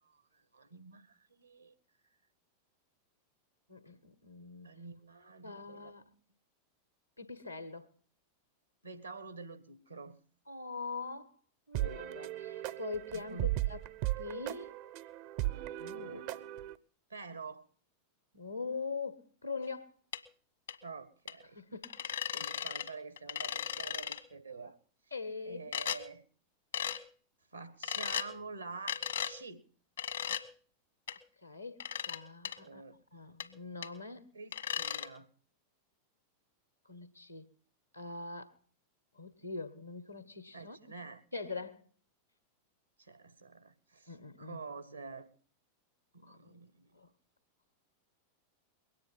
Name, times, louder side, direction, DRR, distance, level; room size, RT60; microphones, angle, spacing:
voice 1, 0.0-1.7 4.6-5.9 8.8-10.2 13.1-13.5 16.0-16.4 17.1-17.6 20.8-21.6 22.3-24.8 25.4-26.2 27.5-29.6 32.6-33.0 34.3-35.3 40.5-41.2 43.0-45.3 46.1-46.9, right 4 dB, 80° right, 1.5 m, -48 dB
voice 2, 3.7-4.8 5.4-6.1 7.2-7.9 10.5-11.3 11.7-13.4 13.7-13.8 14.2-14.7 15.8-16.2 18.3-19.9 21.5-22.4 25.1-25.6 31.4-32.8 33.1-34.3 36.9-37.5 37.9-38.5 39.1-40.8 41.3-41.9 44.1-44.6 46.2-46.4 46.9-47.1, left 4 dB, 90° left, 1.7 m, -43 dB
sound 1, 11.7-16.7, right 16 dB, 45° right, 0.7 m, -37 dB
sound 2, 20.1-20.2 20.7-20.8 21.3-21.4 21.8-22.9 23.2-24.2 25.7-26.0 26.7-27.0 27.8-28.3 28.9-29.3 30.0-30.4 31.1-31.2 31.8-32.2 32.4-32.6 33.4-33.5 33.8-33.9 34.5-35.1, left 9 dB, 65° left, 1.4 m, -36 dB
22.0 x 9.4 x 5.5 m
figure-of-eight pair, 90°, 0 cm